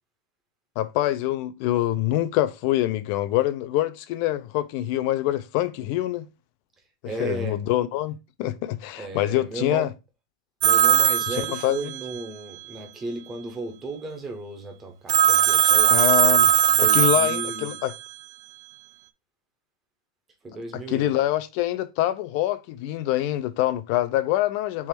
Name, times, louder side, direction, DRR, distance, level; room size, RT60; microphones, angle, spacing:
voice 1, 0.8-6.3 7.2-9.9 11.3-11.8 15.9-16.5 16.8-17.9 20.7-24.9, left 14 dB, 35° left, 0.3 m, -25 dB
voice 2, 7.0-7.6 9.0-9.9 10.6-17.8 20.4-21.2, right 3 dB, 10° right, 0.7 m, -35 dB
Telephone, 10.6-12.1 15.1-17.9, right 9 dB, 60° right, 0.4 m, -19 dB
3.4 x 3.0 x 4.4 m
supercardioid pair, 175°, 3 cm